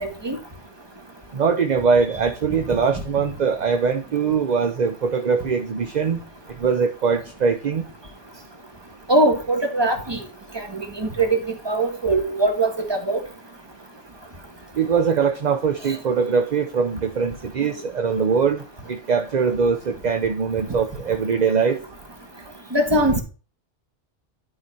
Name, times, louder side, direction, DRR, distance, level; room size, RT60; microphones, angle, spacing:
voice 1, 0.0-0.4 9.1-10.2 10.5-11.4 11.6-13.2 18.1-18.2 22.7-23.2, right 2 dB, 20° right, 1.7 m, -21 dB
voice 2, 1.3-6.2 6.6-7.8 14.7-18.6 18.9-21.8, right 5 dB, 45° right, 0.8 m, -22 dB
11.0 x 4.9 x 4.2 m
omnidirectional pair, 1.2 m